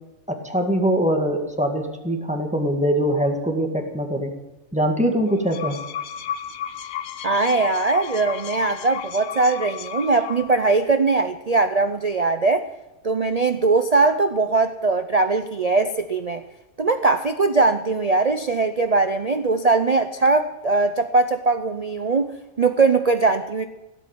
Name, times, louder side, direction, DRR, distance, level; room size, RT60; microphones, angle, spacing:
voice 1, 0.3-4.3 4.7-5.8, equal, 5° right, 3 dB, 2.0 m, -22 dB
sound 1, 5.3-10.7, left 9 dB, 75° left, 1.2 m, -34 dB
voice 2, 7.2-12.7 13.0-16.4 16.8-22.3 22.6-23.7, right 3 dB, 45° right, 8 dB, 0.5 m, -20 dB
17.0 x 8.2 x 9.1 m, 1.0 s
omnidirectional pair, 1.5 m